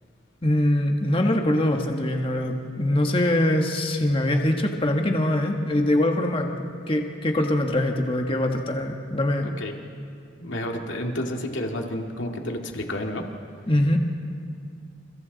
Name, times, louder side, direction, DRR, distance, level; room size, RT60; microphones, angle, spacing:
voice 1, 0.4-6.5 6.9-9.5 13.7-14.0, left 1 dB, 25° left, 3 dB, 1.6 m, -23 dB
voice 2, 9.4-9.8 10.4-13.2, left 1 dB, 65° left, 2 dB, 2.4 m, -30 dB
29.0 x 29.0 x 4.1 m, 2.4 s
head